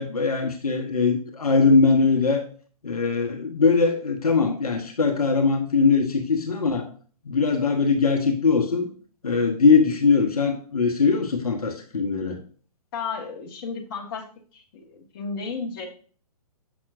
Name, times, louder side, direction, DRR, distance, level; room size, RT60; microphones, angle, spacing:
voice 1, 0.0-2.4 2.8-6.9 7.3-8.9 9.2-12.4, left 4 dB, 70° left, 4 dB, 1.0 m, -21 dB
voice 2, 12.9-14.2 14.5-15.9, left 5 dB, 35° left, 1 dB, 1.4 m, -33 dB
7.0 x 5.8 x 2.5 m, 0.43 s
figure-of-eight pair, 130°, 19 cm